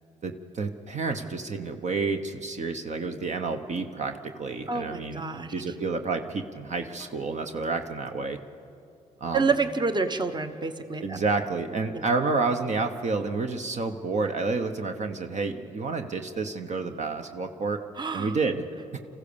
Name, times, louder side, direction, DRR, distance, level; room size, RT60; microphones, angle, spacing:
voice 1, 0.2-5.2 5.5-8.4 9.2-9.5 11.0-17.8 18.1-18.6 18.9-19.0, right 4 dB, 50° right, 6 dB, 1.1 m, -29 dB
voice 2, 4.7-5.5 9.3-11.2 18.0-18.4, right 4 dB, 30° right, 9 dB, 1.1 m, -28 dB
24.5 x 15.0 x 7.0 m, 2.7 s
cardioid pair, 70°, 15 cm